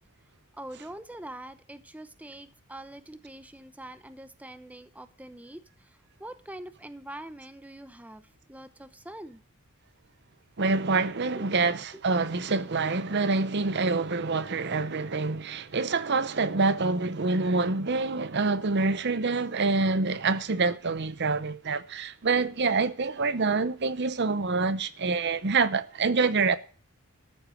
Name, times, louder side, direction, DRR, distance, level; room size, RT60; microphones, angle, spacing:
voice 1, 0.5-9.4 11.3-11.5, right 1 dB, 5° right, 0.8 m, -44 dB
voice 2, 10.6-26.6, right 4 dB, 50° right, 0.8 m, -26 dB
13.5 x 8.0 x 6.4 m
head